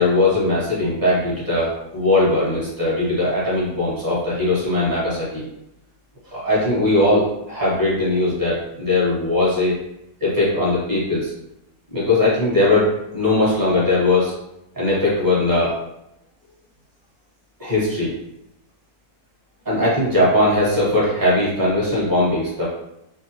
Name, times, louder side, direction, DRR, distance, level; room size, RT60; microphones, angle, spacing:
voice 1, 0.0-5.4 6.3-9.7 10.2-11.3 11.9-14.3 14.7-15.7 17.6-18.1 19.6-22.6, left 2 dB, 15° right, -7 dB, 0.8 m, -19 dB
2.7 x 2.0 x 2.8 m, 0.83 s
omnidirectional pair, 1.7 m